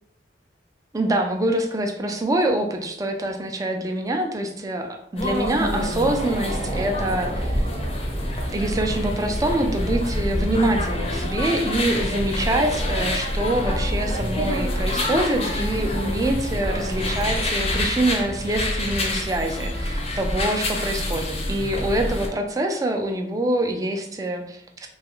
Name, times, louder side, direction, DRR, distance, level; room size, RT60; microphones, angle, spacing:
voice 1, 0.9-7.7 8.5-24.9, right 1 dB, 20° right, 4 dB, 0.3 m, -25 dB
sound 1, 5.2-22.3, left 1 dB, 35° left, 0.6 m, -26 dB
sound 2, 5.6-14.3, right 1 dB, 70° right, 0.6 m, -40 dB
3.1 x 2.3 x 2.9 m, 0.73 s
head